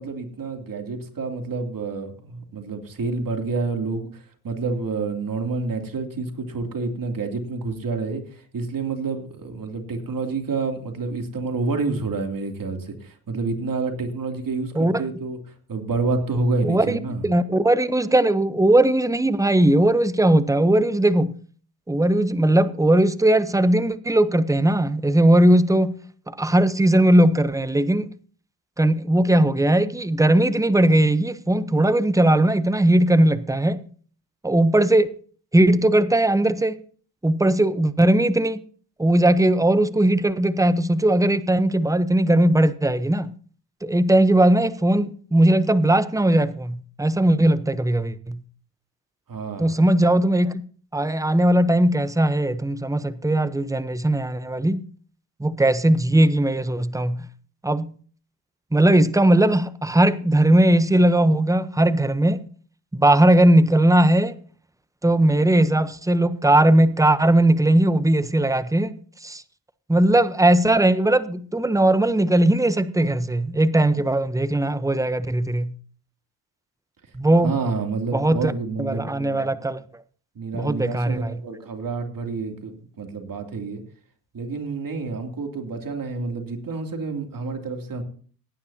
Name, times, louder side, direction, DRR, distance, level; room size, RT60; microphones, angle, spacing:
voice 1, 0.0-15.4 15.7-17.2 49.3-49.8 77.4-79.5 80.3-83.8 84.3-88.0, right 3 dB, 45° right, 3.0 m, -28 dB
voice 2, 16.6-21.4 21.9-26.0 26.3-28.1 28.8-33.8 34.4-35.1 35.5-36.8 37.2-38.6 39.0-43.3 43.8-48.4 49.6-50.6 50.9-54.8 55.4-57.3 57.6-57.9 58.7-62.4 62.9-64.4 65.0-68.9 69.2-69.4 69.9-75.7 77.1-77.5 78.1-78.5 78.8-79.8 80.5-81.4, right 1 dB, 5° right, 0.9 m, -19 dB
18.5 x 9.8 x 2.9 m
supercardioid pair, 55°, 47 cm